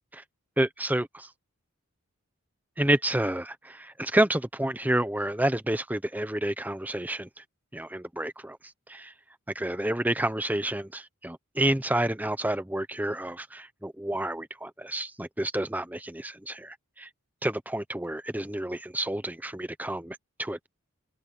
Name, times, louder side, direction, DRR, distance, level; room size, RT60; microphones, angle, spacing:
voice 1, 0.6-1.3 2.8-7.3 7.7-8.6 8.9-9.1 9.5-17.1 17.4-20.7, right 1 dB, 10° right, 1.0 m, -29 dB
head